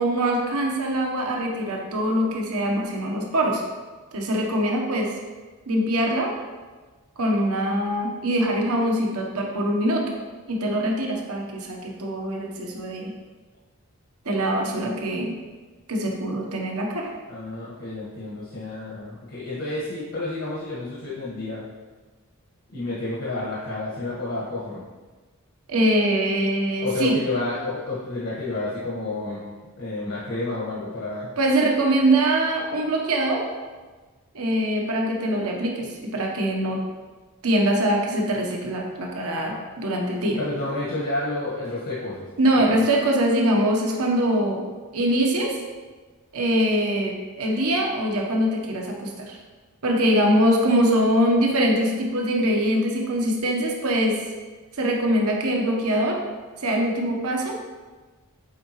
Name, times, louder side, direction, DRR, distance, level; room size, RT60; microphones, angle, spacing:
voice 1, 0.0-3.6 4.1-5.1 5.7-6.3 7.2-10.0 10.5-13.1 14.2-15.3 15.9-17.1 25.7-27.2 31.4-33.4 34.3-36.8 37.4-40.4 42.4-44.6 44.9-45.6 46.3-49.4 49.8-54.2 54.8-56.2 56.6-57.6, right 1 dB, 80° right, 0 dB, 1.1 m, -23 dB
voice 2, 17.3-21.6 22.7-24.8 26.8-29.4 29.8-31.3 40.4-42.3 42.7-42.8, left 2 dB, 60° left, -7 dB, 1.6 m, -30 dB
8.6 x 4.7 x 3.1 m, 1.3 s
head